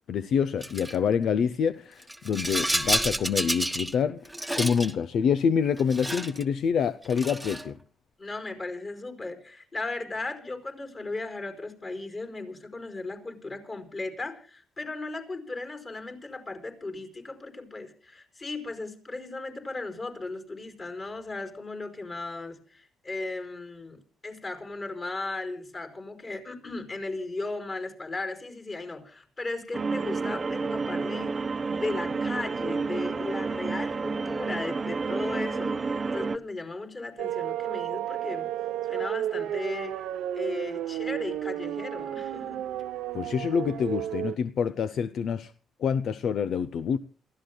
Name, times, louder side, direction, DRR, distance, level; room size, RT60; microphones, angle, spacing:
voice 1, 0.1-7.8 43.1-45.5 45.8-47.0, left 7 dB, 65° left, 0.6 m, -27 dB
Rattle, 0.6-1.0 2.0-3.9 4.3-4.9 5.8-6.4 7.1-7.7, right 1 dB, 5° right, 1.3 m, -29 dB
voice 2, 8.2-38.5 38.8-40.0 40.3-42.7, left 2 dB, 35° left, 4.8 m, -36 dB
sound 1, 29.7-36.4, right 4 dB, 30° right, 0.9 m, -30 dB
sound 2, 37.2-44.4, right 12 dB, 85° right, 0.7 m, -32 dB
27.5 x 14.5 x 2.2 m
cardioid pair, 90°, 0 cm